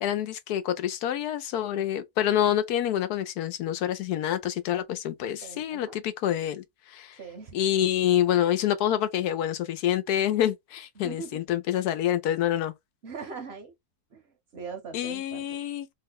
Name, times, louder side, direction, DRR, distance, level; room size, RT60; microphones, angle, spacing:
voice 1, 0.0-7.2 7.5-12.7 14.9-15.9, left 11 dB, 90° left, 1.2 m, -27 dB
voice 2, 5.4-6.0 7.2-7.6 11.0-11.4 13.0-13.7 14.1-15.6, right 5 dB, 55° right, 0.8 m, -41 dB
3.1 x 2.1 x 3.5 m
omnidirectional pair, 1.6 m